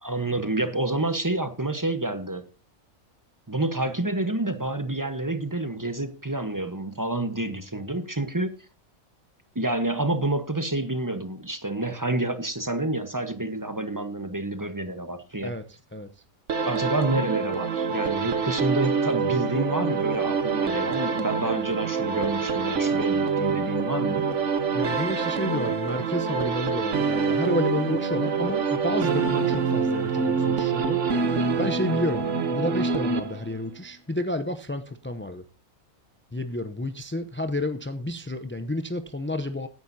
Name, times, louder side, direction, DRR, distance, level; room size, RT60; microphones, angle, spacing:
voice 1, 0.0-2.4 3.5-8.5 9.5-15.6 16.6-24.3, right 2 dB, 15° right, 9 dB, 1.0 m, -28 dB
voice 2, 15.4-16.1 24.7-31.0 31.6-35.4 36.3-39.7, left 1 dB, 20° left, 9 dB, 0.3 m, -30 dB
sound 1, 16.5-33.7, right 5 dB, 60° right, 1.4 m, -26 dB
17.5 x 10.5 x 2.7 m, 0.34 s
omnidirectional pair, 1.4 m